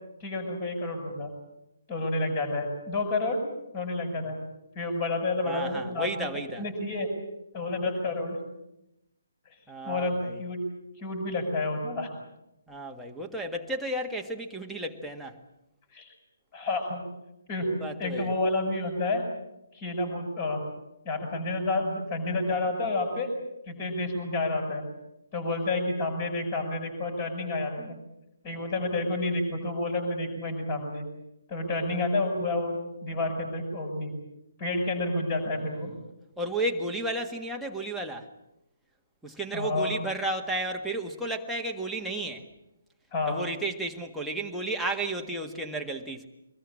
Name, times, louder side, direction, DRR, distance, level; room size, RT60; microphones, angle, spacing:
voice 1, 0.2-1.3 1.9-3.4 3.7-4.4 4.8-6.3 6.6-7.1 7.5-8.4 9.8-10.6 11.0-12.1 15.9-16.1 16.5-17.0 17.5-17.7 18.0-19.2 19.7-20.6 21.0-23.3 23.7-24.8 25.3-28.0 28.4-31.0 31.5-34.1 34.6-35.9 39.5-39.9 43.1-43.4, left 2 dB, 30° left, 3 dB, 7.3 m, -29 dB
voice 2, 5.5-6.6 9.7-10.4 12.7-15.4 17.7-18.3 36.4-38.3 39.2-42.5 43.2-46.3, right 1 dB, ahead, -1 dB, 1.8 m, -33 dB
24.5 x 21.5 x 8.7 m, 0.89 s
figure-of-eight pair, 140°, 0 cm